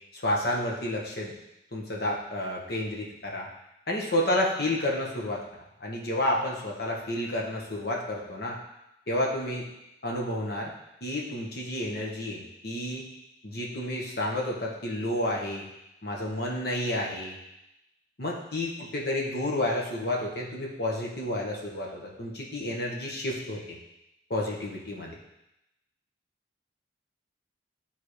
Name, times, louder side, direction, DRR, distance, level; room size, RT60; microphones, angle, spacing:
voice 1, 0.1-1.3 1.7-3.5 3.9-5.4 5.8-8.5 9.1-9.6 10.0-10.7 11.0-13.0 13.4-15.7 16.0-17.4 18.2-23.8 24.3-25.1, left 1 dB, 65° left, -2 dB, 1.4 m, -30 dB
11.0 x 3.9 x 3.3 m, 0.88 s
head